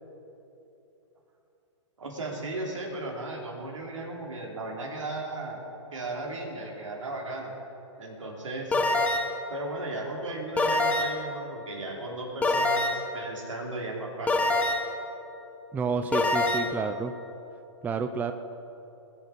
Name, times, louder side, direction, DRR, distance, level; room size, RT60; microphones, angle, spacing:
voice 1, 2.0-5.6 5.9-7.5 8.0-8.8 9.5-14.5, right 2 dB, 80° right, -1 dB, 3.3 m, -36 dB
sound 1, 8.7-9.4 10.6-11.3 12.4-13.2 14.3-15.0 16.1-16.7, left 2 dB, 10° left, 0.8 m, -25 dB
voice 2, 15.7-17.1 17.8-18.3, right 4 dB, 10° right, 9 dB, 0.4 m, -29 dB
20.5 x 7.1 x 6.2 m, 3.0 s
hypercardioid pair, 125°, 16 cm